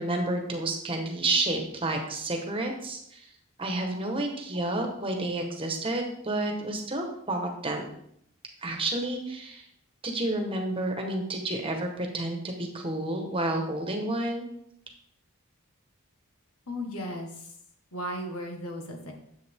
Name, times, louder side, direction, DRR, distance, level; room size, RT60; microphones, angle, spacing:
voice 1, 0.0-3.2 3.6-7.9 8.6-9.7 10.0-14.5, right 2 dB, 25° right, 3 dB, 1.3 m, -30 dB
voice 2, 16.7-17.6 17.9-19.1, equal, 80° left, 3 dB, 1.7 m, -36 dB
10.5 x 7.5 x 3.7 m, 0.72 s
head